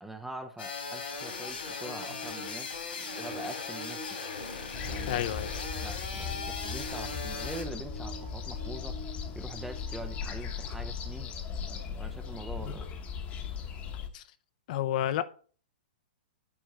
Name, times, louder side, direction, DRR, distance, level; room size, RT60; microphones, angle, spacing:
voice 1, 0.0-4.0 4.9-5.2 5.8-9.0 9.4-12.9, right 1 dB, 5° right, 0.5 m, -44 dB
sound 1, 0.6-7.6, left 4 dB, 85° left, 2.8 m, -38 dB
sound 2, 1.4-11.1 13.5-13.6, right 1 dB, 20° right, 1.2 m, -48 dB
sound 3, 4.7-14.1, left 6 dB, 25° left, 0.9 m, -38 dB
voice 2, 5.1-5.5 14.1-14.2 14.7-15.2, left 12 dB, 50° left, 0.6 m, -30 dB
8.7 x 4.4 x 3.8 m
hypercardioid pair, 150°, 5 cm